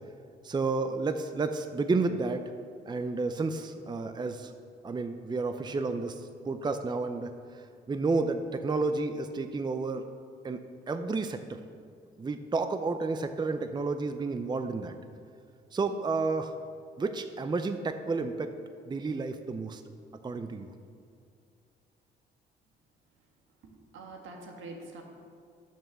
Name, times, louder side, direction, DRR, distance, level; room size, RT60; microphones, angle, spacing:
voice 1, 0.4-2.5 2.9-4.5 4.8-7.3 7.9-10.0 10.4-11.6 12.2-14.9 15.7-16.6 17.0-18.5 18.9-19.8 20.2-20.7, right 3 dB, 20° right, 8 dB, 0.6 m, -31 dB
voice 2, 23.6-25.0, right 2 dB, 80° right, 1 dB, 1.7 m, -45 dB
9.1 x 7.1 x 6.9 m, 2.3 s
cardioid pair, 90°, 20 cm